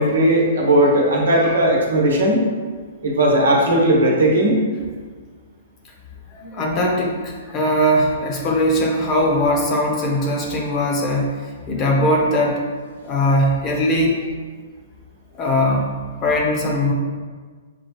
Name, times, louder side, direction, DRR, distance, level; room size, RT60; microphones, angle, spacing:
voice 1, 0.0-2.4 3.0-4.6, right 1 dB, 80° right, -1 dB, 1.0 m, -17 dB
voice 2, 6.3-11.3 11.7-12.6 13.0-14.2 15.3-15.8 16.2-16.9, left 1 dB, 30° left, -1 dB, 0.9 m, -20 dB
6.1 x 2.2 x 3.1 m, 1.5 s
hypercardioid pair, 125°, 0 cm